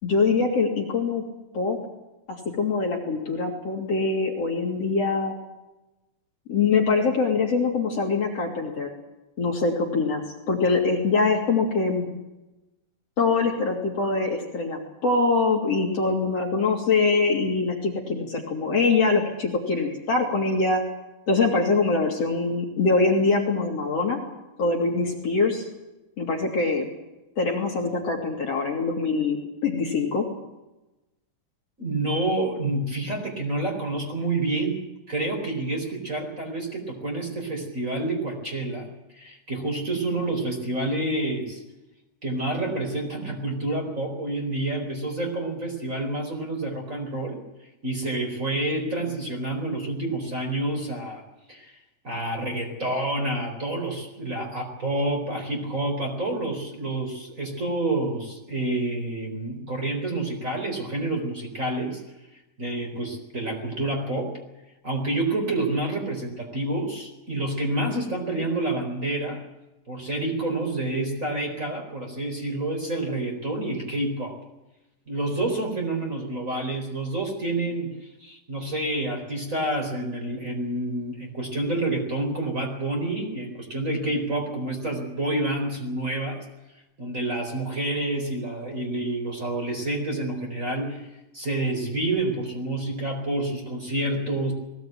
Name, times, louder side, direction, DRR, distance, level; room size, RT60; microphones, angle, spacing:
voice 1, 0.0-1.2 1.5-1.8 2.3-5.3 6.5-8.9 9.4-12.1 13.2-20.8 21.3-24.2 24.6-25.7 26.2-26.9 27.4-29.4 29.6-30.3, left 4 dB, 45° left, 0 dB, 3.8 m, -23 dB
voice 2, 31.8-34.8 35.1-38.8 39.1-41.6 42.2-47.4 47.8-51.2 51.5-51.8 52.0-62.0 62.6-64.3 64.8-69.4 69.9-74.4 75.1-86.4 87.0-94.5, right 2 dB, 20° right, 2 dB, 4.4 m, -28 dB
20.5 x 17.0 x 9.1 m, 0.99 s
omnidirectional pair, 4.1 m